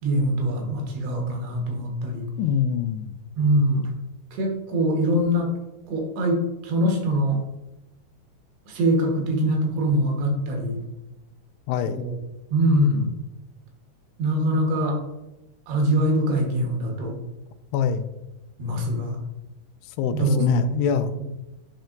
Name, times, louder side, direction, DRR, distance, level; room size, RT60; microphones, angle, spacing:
voice 1, 0.0-2.3 3.4-3.8 4.3-5.5 5.9-7.4 8.7-10.8 11.9-12.1 12.5-13.2 14.2-15.0 15.7-17.2 18.6-19.2 20.1-20.5 21.1-21.2, equal, 75° right, 1 dB, 3.3 m, -23 dB
voice 2, 2.4-3.1 11.7-12.0 17.7-18.1 20.0-21.1, left 7 dB, 85° left, 11 dB, 2.6 m, -24 dB
10.5 x 4.3 x 2.6 m, 0.98 s
omnidirectional pair, 4.8 m